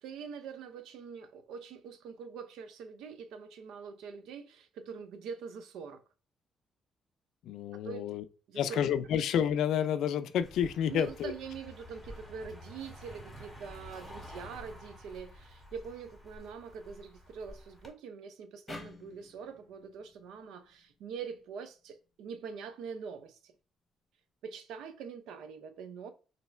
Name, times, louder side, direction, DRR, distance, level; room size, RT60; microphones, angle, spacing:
voice 1, 0.0-6.0 7.8-8.2 8.5-8.8 10.9-23.5 24.4-26.1, right 6 dB, 85° right, 0.5 m, -44 dB
voice 2, 7.4-8.2 8.5-11.3, left 9 dB, 80° left, 0.4 m, -30 dB
Car passing by, 10.4-17.9, equal, ahead, 1.9 m, -50 dB
sound 1, 18.7-21.9, left 2 dB, 20° left, 1.0 m, -51 dB
3.1 x 2.8 x 4.2 m
cardioid pair, 90°, 0 cm